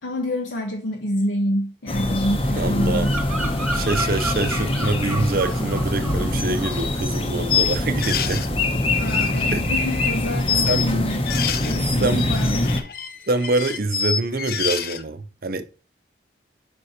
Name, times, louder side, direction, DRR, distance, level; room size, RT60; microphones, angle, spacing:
voice 1, 0.0-3.1 8.9-11.3 11.6-12.7, equal, 85° left, 1.0 m, -27 dB
sound 1, 1.9-12.8, left 1 dB, 30° left, 0.9 m, -24 dB
voice 2, 2.6-3.1 3.7-8.6 9.5-9.6 10.7-11.0 11.7-12.3 13.3-15.7, right 2 dB, 55° right, 0.6 m, -25 dB
Bird vocalization bird call bird song, 2.7-6.3 6.5-7.0, right 2 dB, 10° right, 1.3 m, -32 dB
sound 2, 5.8-5.9 6.3-6.4 7.5-8.5 9.0-10.1 10.4-11.8 12.2-15.0, left 8 dB, 55° left, 0.6 m, -27 dB
5.2 x 4.9 x 4.2 m
head